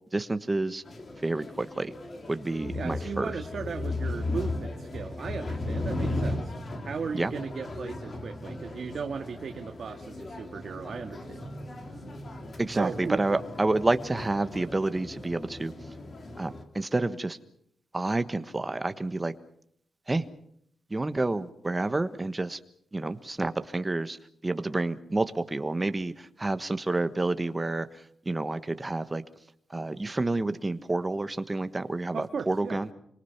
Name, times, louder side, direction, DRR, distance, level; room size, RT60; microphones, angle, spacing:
voice 1, 0.1-0.8 1.2-1.9 2.3-3.4 7.1-7.3 12.6-15.7 16.4-17.4 17.9-19.3 20.1-20.3 20.9-22.6 22.9-24.2 24.4-27.9 28.2-29.2 29.7-32.9, right 2 dB, 15° right, 11 dB, 1.3 m, -29 dB
sound 1, 0.8-16.6, left 2 dB, 35° left, 3.1 m, -36 dB
voice 2, 2.7-6.5 6.8-11.5 12.7-13.2 32.1-32.8, right 5 dB, 55° right, 4 dB, 1.9 m, -36 dB
26.5 x 25.0 x 5.9 m, 0.71 s
wide cardioid pair, 145°, 0 cm